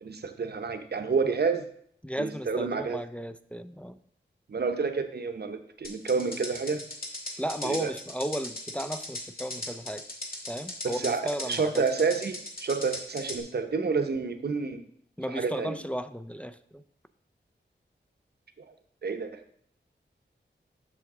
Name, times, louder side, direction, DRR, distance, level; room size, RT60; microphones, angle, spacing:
voice 1, 0.0-1.7 2.2-3.0 4.5-6.8 7.6-7.9 10.8-14.9 15.3-15.8 18.6-18.7 19.0-19.4, right 5 dB, 55° right, 7 dB, 0.7 m, -29 dB
voice 2, 2.0-4.0 7.4-10.0 10.5-11.8 15.2-16.8, equal, 5° left, 10 dB, 0.3 m, -34 dB
sound 1, 5.8-13.4, left 2 dB, 50° left, 1.8 m, -38 dB
7.6 x 6.3 x 3.6 m, 0.64 s
wide cardioid pair, 95°, 19 cm